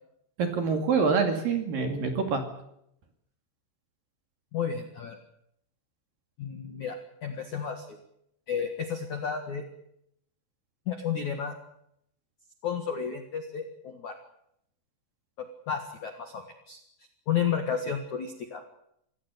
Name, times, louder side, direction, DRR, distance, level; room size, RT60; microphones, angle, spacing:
voice 1, 0.4-2.4, right 5 dB, 50° right, 5 dB, 3.6 m, -26 dB
voice 2, 4.5-5.2 6.4-8.0 8.5-9.6 10.9-11.5 12.6-14.2 15.4-16.8 17.3-18.6, left 7 dB, 60° left, 5 dB, 2.1 m, -32 dB
26.5 x 16.5 x 8.1 m, 0.75 s
omnidirectional pair, 6.0 m